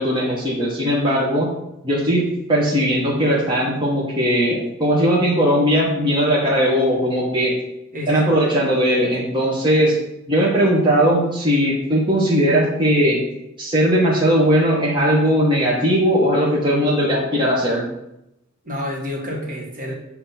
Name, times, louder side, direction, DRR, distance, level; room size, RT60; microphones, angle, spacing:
voice 1, 0.0-1.5 1.8-7.5 8.1-9.9 10.3-13.2 13.6-17.9, equal, 25° right, -6 dB, 1.0 m, -18 dB
voice 2, 7.9-8.4 18.6-19.9, left 1 dB, 40° right, -2 dB, 1.6 m, -29 dB
7.9 x 2.8 x 5.6 m, 0.87 s
head